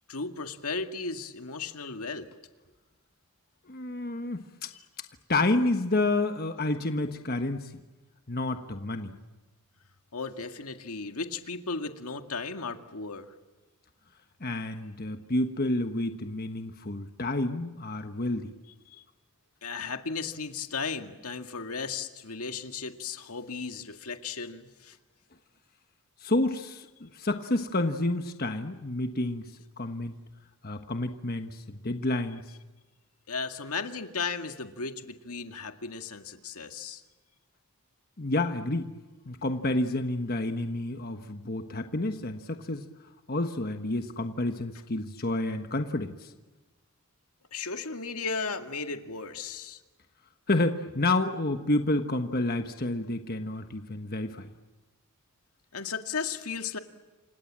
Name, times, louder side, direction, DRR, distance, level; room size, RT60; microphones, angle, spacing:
voice 1, 0.1-2.3 10.1-13.3 18.9-19.0 19.6-25.0 33.3-37.0 47.5-49.8 55.7-56.8, left 4 dB, 80° left, 6 dB, 2.0 m, -35 dB
voice 2, 3.7-4.7 5.3-7.7 8.3-9.2 14.4-18.5 26.2-29.5 29.8-30.1 30.6-32.4 38.2-38.9 39.3-42.9 43.3-46.3 50.5-54.5, left 2 dB, 45° left, 7 dB, 1.3 m, -29 dB
29.0 x 26.5 x 7.5 m, 1.2 s
head